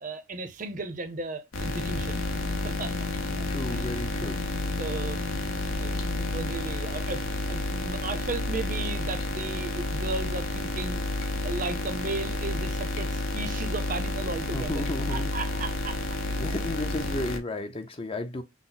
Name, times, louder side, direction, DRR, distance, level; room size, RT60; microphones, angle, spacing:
voice 1, 0.0-2.2 2.6-3.0 3.3-3.9 4.2-4.3 4.8-5.2 5.8-6.0 6.3-7.2 7.5-11.1 11.4-16.0, right 3 dB, 40° right, 0.6 m, -35 dB
sound 1, 1.5-17.4, left 2 dB, 85° left, 0.9 m, -30 dB
voice 2, 3.5-4.4 14.5-15.3 16.3-18.4, left 1 dB, 25° left, 0.5 m, -33 dB
5.9 x 2.0 x 3.9 m
head